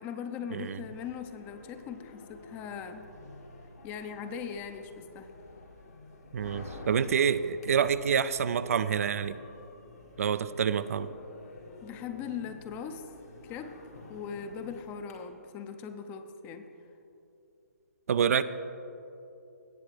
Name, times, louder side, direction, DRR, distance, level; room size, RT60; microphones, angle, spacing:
voice 1, 0.0-3.1 3.8-5.3 11.8-13.1 13.4-13.8 14.1-16.7, left 7 dB, 20° left, 9 dB, 0.5 m, -40 dB
sound 1, 0.8-15.1, left 2 dB, 75° left, 1.9 m, -50 dB
voice 2, 6.3-9.4 10.2-11.1 18.1-18.4, right 7 dB, 60° right, 14 dB, 0.4 m, -27 dB
17.5 x 7.6 x 3.3 m, 2.8 s
hypercardioid pair, 145°, 9 cm